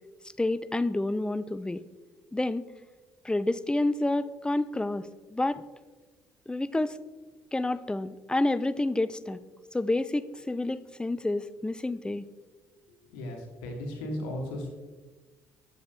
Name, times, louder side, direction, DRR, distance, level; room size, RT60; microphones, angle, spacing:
voice 1, 0.4-1.8 2.3-2.6 3.2-5.6 6.5-7.0 7.5-9.4 9.7-12.3, left 2 dB, 10° left, 15 dB, 0.3 m, -29 dB
voice 2, 13.1-14.7, left 1 dB, 85° left, 3 dB, 1.2 m, -35 dB
7.0 x 5.9 x 3.4 m, 1.3 s
hypercardioid pair, 60°, 9 cm